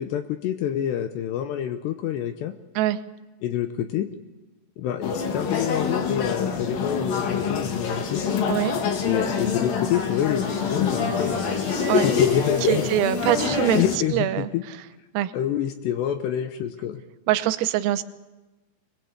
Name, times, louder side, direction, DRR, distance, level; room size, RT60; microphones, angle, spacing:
voice 1, 0.0-2.5 3.4-4.1 4.8-8.2 9.0-11.4 11.9-12.9 13.8-14.6 15.3-17.0, left 11 dB, 75° left, 9 dB, 2.6 m, -27 dB
sound 1, 5.0-14.0, left 6 dB, 55° left, 3.3 m, -25 dB
sound 2, 8.6-13.4, right 3 dB, 20° right, 5.4 m, -43 dB
voice 2, 12.7-13.8 14.1-14.5 15.2-15.3 17.3-18.0, right 13 dB, 90° right, 12 dB, 3.6 m, -23 dB
23.0 x 20.0 x 8.1 m, 1.1 s
omnidirectional pair, 5.8 m